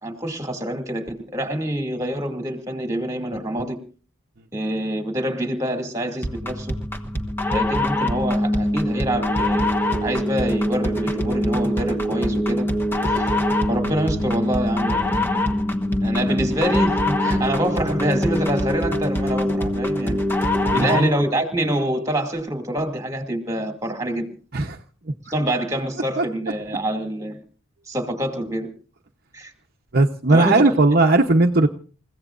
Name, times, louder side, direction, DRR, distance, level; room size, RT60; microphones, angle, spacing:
voice 1, 0.0-3.8 4.5-6.7 7.5-9.7 10.0-12.7 13.1-13.3 13.7-15.3 16.0-20.2 20.7-24.3 25.2-27.4 27.9-28.7 29.3-29.5 30.3-30.7, right 1 dB, 15° right, 4 dB, 2.5 m, -26 dB
sound 1, 6.2-21.2, left 1 dB, 10° left, 1.2 m, -23 dB
voice 2, 20.6-21.1 24.5-24.8 26.2-26.3 29.9-31.7, right 2 dB, 45° right, 3 dB, 0.9 m, -17 dB
29.0 x 16.0 x 2.5 m, 0.41 s
head